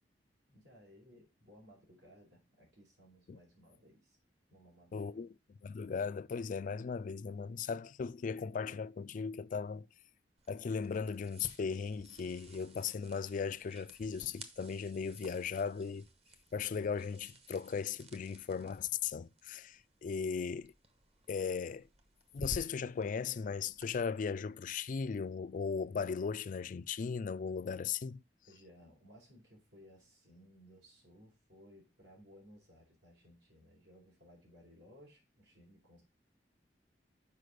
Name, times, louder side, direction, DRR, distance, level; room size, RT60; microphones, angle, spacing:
voice 1, 0.5-4.2 4.5-5.2 28.4-36.0, equal, 80° right, 4.7 m, -60 dB
voice 2, 4.9-5.3 5.6-9.9 10.5-16.1 16.5-20.7 21.3-21.9 22.3-28.2, left 6 dB, 50° left, 0.3 m, -37 dB
sound 1, 10.4-23.9, right 1 dB, 35° right, 1.1 m, -54 dB
6.6 x 5.0 x 6.2 m
head